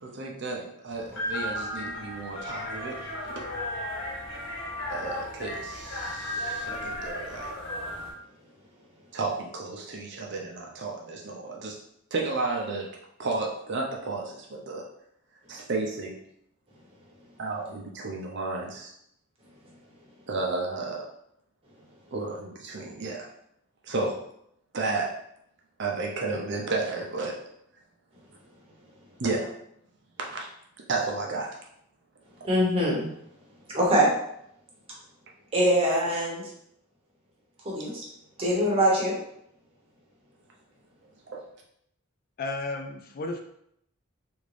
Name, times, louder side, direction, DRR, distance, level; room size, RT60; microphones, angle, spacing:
voice 1, 0.0-3.0 3.2-3.4 4.9-7.5 9.1-11.8 12.1-12.9 13.2-14.8 15.5-16.2 17.4-18.9 20.3-21.0 22.1-23.3 23.9-24.2 24.7-25.1 25.8-27.3 29.2-29.5 30.3-30.5 30.9-31.5 41.3-41.4, right 3 dB, 55° right, 0 dB, 0.6 m, -32 dB
sound 1, 0.9-8.1, left 1 dB, 60° left, 1.2 m, -35 dB
voice 2, 32.4-33.1 33.7-34.1 35.5-36.5 37.6-38.0 38.4-39.2, equal, 25° right, -4 dB, 1.0 m, -23 dB
voice 3, 42.4-43.4, left 2 dB, 45° left, 4 dB, 0.4 m, -33 dB
3.6 x 2.5 x 3.3 m, 0.73 s
head